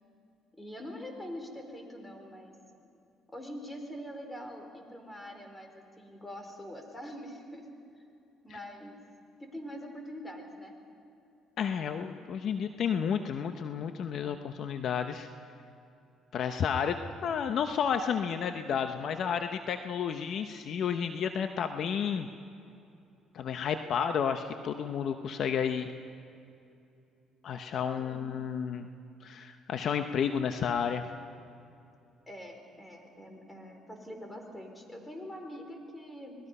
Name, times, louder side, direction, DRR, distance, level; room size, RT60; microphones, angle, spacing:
voice 1, 0.5-2.6 3.3-7.7 7.9-8.0 8.4-9.0 9.4-10.7 28.0-28.5 32.3-36.4, equal, 15° left, 3 dB, 4.2 m, -44 dB
voice 2, 11.6-15.3 16.3-22.3 23.3-25.9 27.4-28.9 29.2-31.0, left 7 dB, 60° left, 7 dB, 0.9 m, -31 dB
26.0 x 19.5 x 5.5 m, 2.6 s
supercardioid pair, 85°, 0 cm